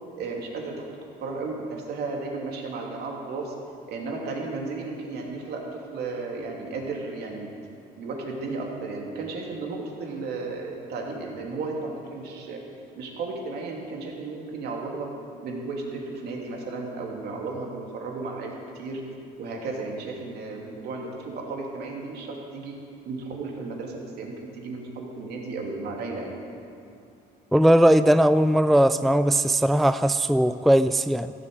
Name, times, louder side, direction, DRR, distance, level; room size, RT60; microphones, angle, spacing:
voice 1, 0.2-0.7 1.2-3.5 3.9-5.6 5.9-7.5 7.9-12.6 13.0-15.1 15.4-19.0 19.4-22.8 23.0-26.4, right 3 dB, 70° right, 0 dB, 2.9 m, -34 dB
voice 2, 27.5-31.3, right 1 dB, ahead, 12 dB, 0.3 m, -19 dB
14.5 x 9.0 x 7.9 m, 2.5 s
cardioid pair, 110°, 17 cm